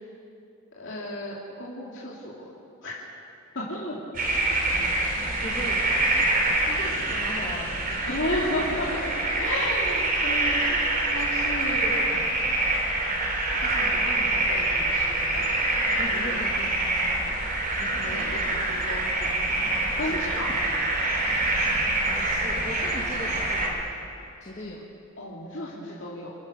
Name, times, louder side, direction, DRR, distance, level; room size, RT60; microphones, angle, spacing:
voice 1, 0.8-2.5 2.8-2.9 3.5-4.0 4.5-5.1 5.6-5.8 8.1-11.9 13.5-15.5 15.8-16.4 17.9-19.3 20.0-20.5 25.2-26.3, left 1 dB, 60° left, -6 dB, 3.0 m, -34 dB
sound 1, 4.1-23.7, right 2 dB, 45° right, 3.6 m, -25 dB
voice 2, 5.4-5.8 6.1-8.4 16.0-17.3 17.8-18.8 20.0-20.2 22.1-23.8 24.4-24.8, left 1 dB, 35° left, -3 dB, 1.9 m, -39 dB
29.5 x 13.5 x 6.9 m, 2.7 s
head